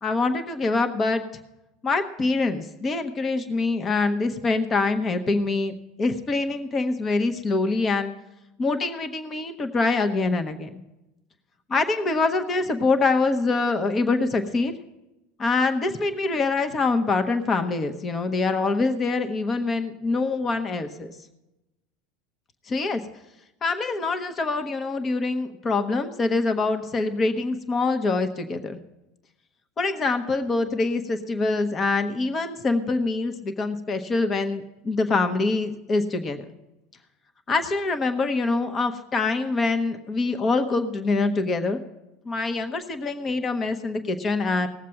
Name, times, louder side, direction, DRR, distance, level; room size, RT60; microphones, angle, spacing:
voice 1, 0.0-1.2 1.8-8.1 8.6-10.7 11.7-14.7 15.4-21.1 22.7-23.0 23.6-28.8 29.8-36.4 37.5-41.8 42.2-44.7, left 3 dB, 30° left, 8 dB, 1.3 m, -25 dB
18.5 x 7.4 x 5.8 m, 0.96 s
hypercardioid pair, 85°, 0 cm